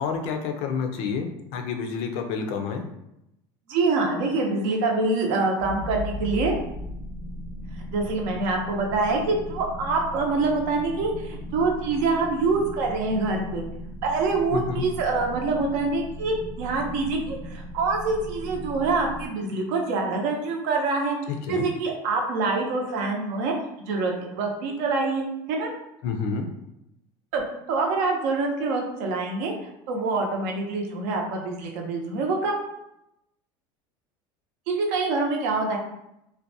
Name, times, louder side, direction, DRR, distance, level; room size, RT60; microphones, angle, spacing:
voice 1, 0.0-2.8 14.5-14.8 21.3-21.7 26.0-26.5, left 5 dB, 60° left, 5 dB, 0.4 m, -29 dB
voice 2, 3.7-6.5 7.9-13.6 14.0-21.2 21.5-23.5 23.9-25.7 27.3-27.4 27.7-29.5 29.9-32.6 34.7-35.8, right 3 dB, 65° right, 1 dB, 0.6 m, -25 dB
sound 1, 5.6-19.3, left 1 dB, 85° right, 1.0 m, -37 dB
2.5 x 2.1 x 2.6 m, 0.84 s
cardioid pair, 150°, 12 cm